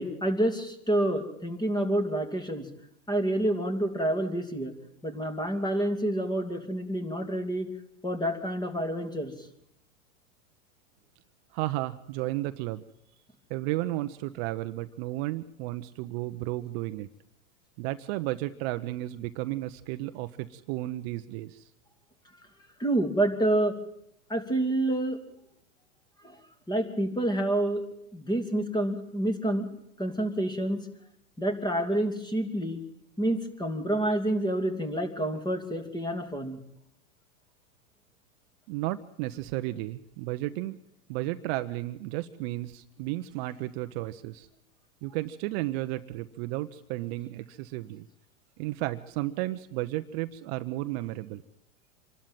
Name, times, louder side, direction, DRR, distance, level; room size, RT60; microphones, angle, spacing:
voice 1, 0.0-2.7 3.1-4.7 5.0-7.7 8.0-9.3 22.8-23.8 24.3-25.2 26.2-26.4 26.7-27.8 28.1-30.9 31.4-32.8 33.2-36.6, right 1 dB, 10° left, 7 dB, 2.8 m, -28 dB
voice 2, 11.5-12.8 13.5-17.1 17.8-21.7 38.7-40.8 41.1-44.5 45.0-48.1 48.6-51.4, right 17 dB, 45° right, 10 dB, 0.9 m, -33 dB
26.0 x 12.5 x 9.1 m, 0.75 s
hypercardioid pair, 110°, 42 cm